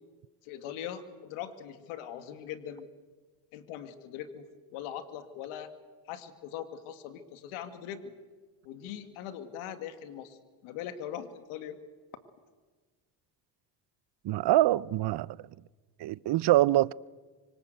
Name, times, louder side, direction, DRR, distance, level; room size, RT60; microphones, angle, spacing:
voice 1, 0.4-2.9 3.5-5.7 6.1-8.1 8.6-11.8, left 9 dB, 80° left, 2.3 m, -41 dB
voice 2, 14.2-15.4 16.0-16.9, right 15 dB, 55° right, 0.8 m, -24 dB
25.5 x 25.0 x 8.0 m
supercardioid pair, 75°, 50 cm